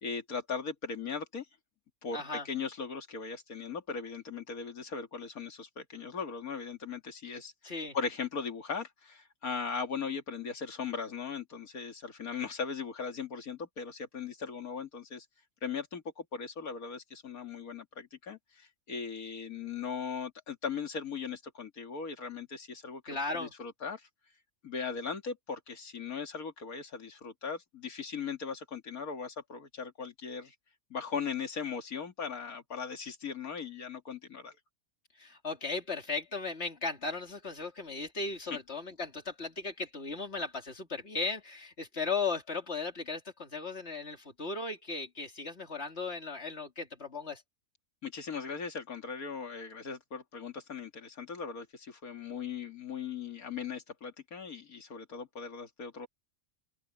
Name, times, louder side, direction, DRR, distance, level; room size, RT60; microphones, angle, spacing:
voice 1, 0.0-1.5 2.0-15.3 15.6-24.1 24.6-30.5 30.9-34.6 48.0-56.1, left 6 dB, 90° left, 2.5 m, -39 dB
voice 2, 2.1-2.5 7.6-8.0 23.1-23.5 35.2-47.4, left 4 dB, 50° left, 2.9 m, -36 dB
omnidirectional pair, 1.5 m